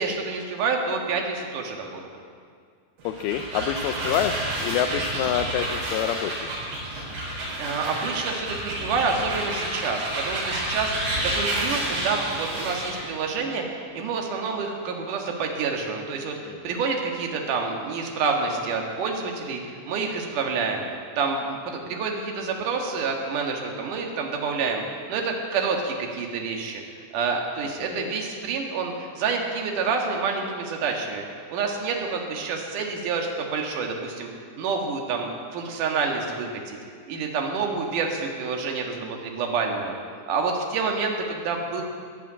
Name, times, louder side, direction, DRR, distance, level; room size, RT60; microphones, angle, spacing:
voice 1, 0.0-2.2 7.6-26.8 27.1-31.2 31.5-34.3 34.6-36.8 37.1-39.9 40.3-41.8, right 4 dB, 55° right, 1 dB, 2.8 m, -28 dB
voice 2, 3.0-6.5 16.5-16.8 27.8-28.1, left 9 dB, 85° left, 6 dB, 2.2 m, -27 dB
sound 1, 3.0-13.1, right 1 dB, 85° right, 6.9 m, -30 dB
14.5 x 10.5 x 8.6 m, 2.1 s
omnidirectional pair, 5.0 m